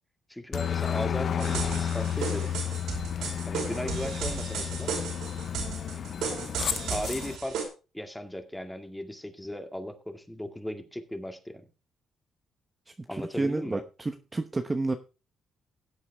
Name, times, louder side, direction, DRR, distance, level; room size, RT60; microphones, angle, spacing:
voice 1, 0.3-2.5 3.5-4.9 6.9-7.6 7.9-11.6 13.1-13.8, left 1 dB, 5° left, 6 dB, 2.1 m, -37 dB
Aircraft, 0.5-7.4, left 9 dB, 55° left, 0.7 m, -32 dB
sound 1, 1.4-7.6, right 6 dB, 85° right, 4.9 m, -35 dB
voice 2, 13.1-14.9, right 3 dB, 20° right, 7 dB, 0.9 m, -30 dB
16.0 x 8.2 x 3.5 m, 0.32 s
cardioid pair, 90°, 0 cm